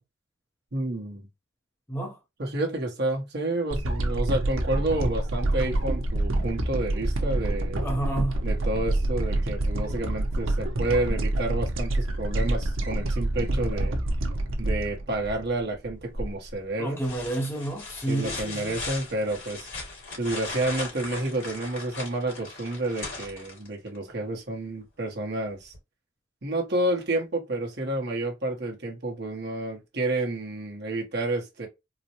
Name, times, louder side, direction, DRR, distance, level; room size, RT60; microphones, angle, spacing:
voice 1, 0.7-1.3 2.4-7.8 8.4-14.0 14.6-17.0 18.1-19.7 20.2-25.7 26.4-31.7, right 2 dB, 55° right, 1.0 m, -30 dB
sound 1, 3.7-16.0 16.5-16.6, right 1 dB, 80° right, 0.9 m, -27 dB
voice 2, 7.8-8.4 16.8-18.8, right 1 dB, 10° left, 0.7 m, -30 dB
sound 2, 16.1-16.5 17.0-24.0 25.7-25.8, left 3 dB, 65° left, 2.2 m, -38 dB
4.0 x 2.1 x 2.8 m
head